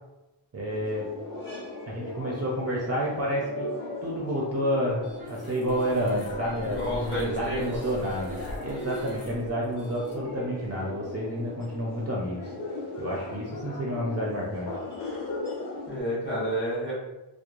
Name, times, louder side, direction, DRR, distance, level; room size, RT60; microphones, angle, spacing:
voice 1, 0.5-1.1 1.9-3.7 4.0-12.5 13.0-14.8, equal, 35° right, -4 dB, 0.4 m, -30 dB
sound 1, 0.7-16.0, left 2 dB, 55° left, 1.2 m, -38 dB
sound 2, 5.0-10.9, equal, 75° left, 1.3 m, -44 dB
voice 2, 6.6-7.6 15.9-16.9, equal, 25° left, -7 dB, 0.9 m, -30 dB
3.0 x 2.0 x 2.4 m, 1.0 s
wide cardioid pair, 135°, 47 cm